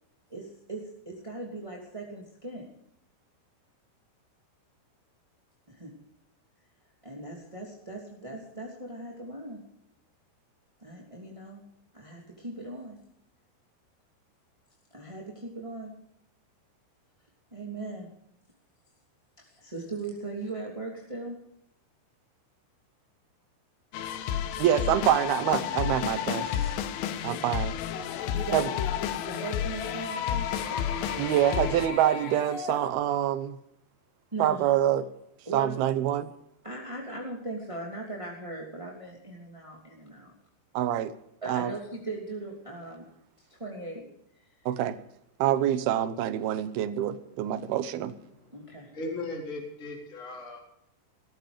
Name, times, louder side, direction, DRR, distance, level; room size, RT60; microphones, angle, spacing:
voice 1, 0.3-2.7 5.7-5.9 7.0-9.6 10.8-11.6 11.9-13.0 14.9-15.9 17.5-18.1 19.4-21.4 24.3-24.6 27.3-27.5 28.1-28.7 29.2-31.2 34.3-34.7 35.4-35.8 36.2-36.3 36.6-40.3 41.4-43.0 43.5-44.0 44.3-44.4 48.5-48.9, right 2 dB, 10° right, -1 dB, 1.7 m, -39 dB
sound 1, 23.9-31.9, left 10 dB, 80° left, 3.6 m, -31 dB
voice 2, 24.6-26.5 27.2-27.8 28.5-28.7 31.2-33.6 34.4-35.1 35.5-36.3 40.7-41.1 41.5-41.7 44.7-45.0 45.4-48.1, right 11 dB, 80° right, 12 dB, 2.3 m, -26 dB
sound 2, 27.8-32.9, left 7 dB, 65° left, 3.7 m, -37 dB
voice 3, 46.7-47.1 47.5-47.7 48.3-50.6, left 2 dB, 15° left, 0 dB, 3.9 m, -39 dB
19.0 x 14.5 x 5.0 m, 0.74 s
omnidirectional pair, 5.5 m